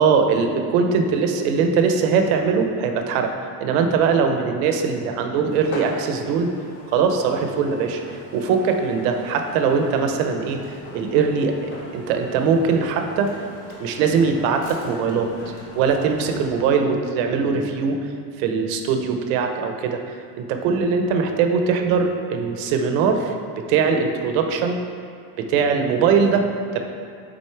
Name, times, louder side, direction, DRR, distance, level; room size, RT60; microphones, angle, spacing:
voice 1, 0.0-3.3 3.6-6.5 6.9-13.4 13.8-15.3 15.7-18.1 18.4-24.8 25.4-26.8, right 5 dB, 70° right, 5 dB, 0.7 m, -21 dB
sound 1, 5.5-16.7, left 2 dB, 30° left, 0.8 m, -40 dB
6.2 x 4.1 x 4.5 m, 2.2 s
cardioid pair, 165°, 43 cm